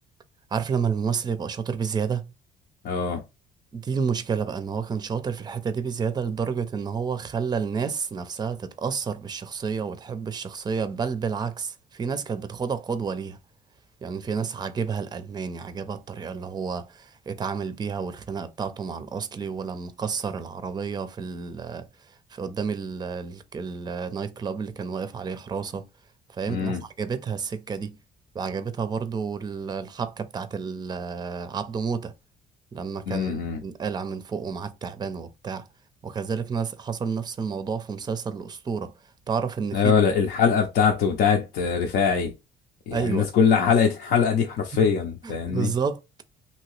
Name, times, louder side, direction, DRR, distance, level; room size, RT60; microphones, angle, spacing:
voice 1, 0.5-2.2 3.7-13.4 14.0-25.9 26.3-28.0 28.3-32.1 32.7-35.7 36.0-38.9 39.3-39.9 42.9-43.3 44.7-44.9 45.2-46.0, right 6 dB, 25° right, 0.5 m, -30 dB
voice 2, 2.8-3.2 26.5-26.8 33.1-33.6 39.7-42.3 42.9-45.7, left 6 dB, 65° left, 0.7 m, -22 dB
2.9 x 2.7 x 3.1 m
cardioid pair, 110°, 17 cm